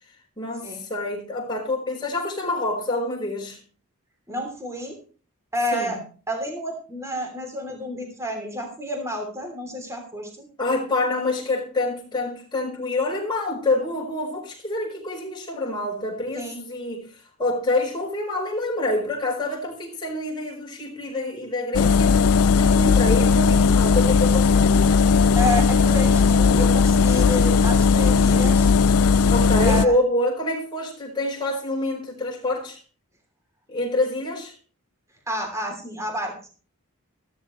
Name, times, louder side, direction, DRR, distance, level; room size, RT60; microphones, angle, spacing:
voice 1, 0.4-3.6 5.7-6.0 10.6-22.2 22.5-25.1 28.1-28.5 29.3-32.8 33.7-34.5, left 2 dB, 20° left, -2 dB, 4.6 m, -27 dB
voice 2, 4.3-5.0 5.5-6.0 6.3-10.5 16.3-16.6 25.3-28.7 29.6-29.9 35.3-36.5, left 1 dB, 15° right, 3 dB, 3.1 m, -30 dB
sound 1, 21.7-29.9, left 5 dB, 90° left, 0.5 m, -17 dB
14.5 x 13.0 x 3.1 m, 0.37 s
head